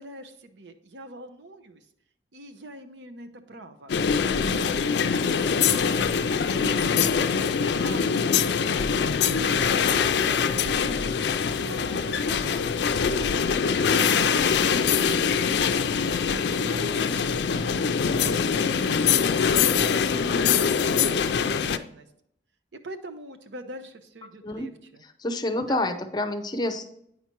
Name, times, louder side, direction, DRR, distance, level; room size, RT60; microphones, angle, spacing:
voice 1, 0.0-1.9 2.3-3.9 4.3-11.1 11.6-19.7 19.9-22.1 22.7-25.0 25.7-25.8, right 2 dB, 85° right, 7 dB, 0.7 m, -44 dB
sound 1, 3.9-21.8, left 6 dB, 75° left, 0.4 m, -23 dB
voice 2, 25.0-26.9, left 1 dB, 25° left, 7 dB, 0.5 m, -28 dB
8.7 x 5.8 x 3.0 m, 0.74 s
head